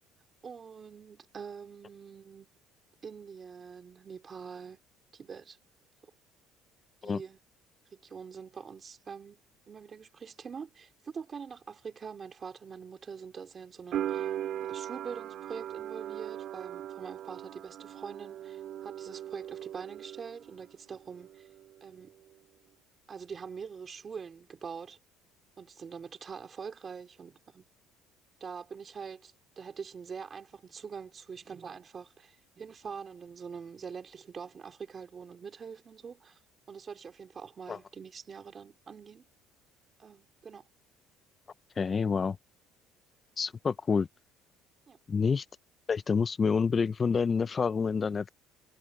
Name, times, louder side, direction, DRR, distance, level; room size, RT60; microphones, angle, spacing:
voice 1, 0.4-2.5 3.0-4.8 5.1-5.6 7.0-7.4 7.9-14.3 14.6-21.5 21.8-22.1 23.1-25.0 25.6-27.6 28.4-36.4 36.7-39.3 40.0-40.7 44.9-45.0, right 6 dB, 25° right, 3.6 m, -44 dB
sound 1, 13.9-20.7 21.0-21.9, right 11 dB, 50° right, 3.0 m, -39 dB
voice 2, 41.8-42.4 43.4-44.1 45.1-45.5 45.9-48.3, left 5 dB, 25° left, 0.3 m, -28 dB
cardioid pair, 150°, 0 cm